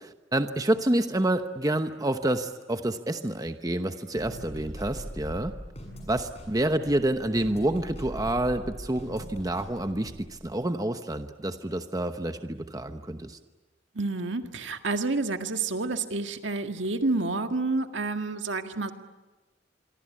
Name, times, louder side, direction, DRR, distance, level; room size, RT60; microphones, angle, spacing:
voice 1, 0.0-5.5 6.1-13.4, right 1 dB, 20° right, 8 dB, 0.9 m, -28 dB
sound 1, 4.2-10.5, equal, 35° left, 7.4 m, -41 dB
voice 2, 14.0-18.9, right 3 dB, 70° right, 6 dB, 1.9 m, -29 dB
26.5 x 24.0 x 8.6 m, 1.2 s
head